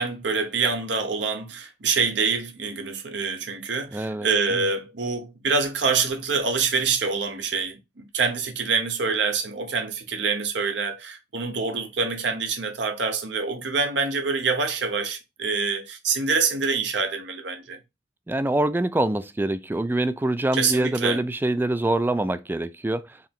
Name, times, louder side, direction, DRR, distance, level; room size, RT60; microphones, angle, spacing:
voice 1, 0.0-7.8 8.1-17.8 20.5-21.2, right 5 dB, 70° right, 0.8 m, -26 dB
voice 2, 3.9-4.6 18.3-23.1, right 1 dB, 10° right, 0.3 m, -25 dB
4.6 x 3.0 x 3.6 m
head